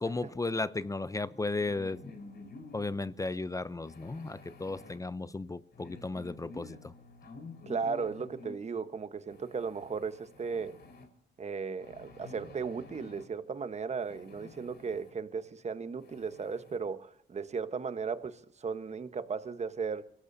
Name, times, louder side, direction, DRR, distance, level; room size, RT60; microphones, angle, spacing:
voice 1, 0.0-2.1 2.7-6.9, left 3 dB, 15° left, 0.6 m, -35 dB
sound 1, 1.6-3.1 3.8-5.0 5.7-8.5 9.3-11.1 11.8-13.3 14.0-15.1 15.6-15.7 16.0-16.8, left 3 dB, 60° left, 4.8 m, -50 dB
voice 2, 7.7-10.8 11.4-20.0, right 5 dB, 35° right, 1.2 m, -36 dB
23.5 x 17.5 x 2.8 m
cardioid pair, 90°, 20 cm